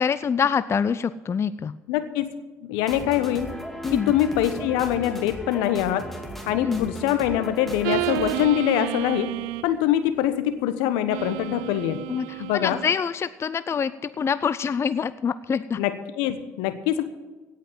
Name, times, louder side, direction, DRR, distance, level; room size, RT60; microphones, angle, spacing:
voice 1, 0.0-1.7 3.8-4.1 6.6-6.9 12.1-12.3 12.5-15.8, left 6 dB, 35° left, 15 dB, 0.5 m, -25 dB
voice 2, 1.9-2.3 2.6-3.5 3.9-6.0 6.5-9.3 9.6-12.0 12.4-12.8 15.8-17.0, left 11 dB, 75° left, 11 dB, 1.0 m, -24 dB
sound 1, 2.8-8.4, equal, 5° left, 2.3 m, -37 dB
sound 2, 7.8-9.8 11.1-12.9, right 18 dB, 75° right, 0.4 m, -30 dB
17.0 x 5.7 x 9.2 m, 1.2 s
hypercardioid pair, 60°, 8 cm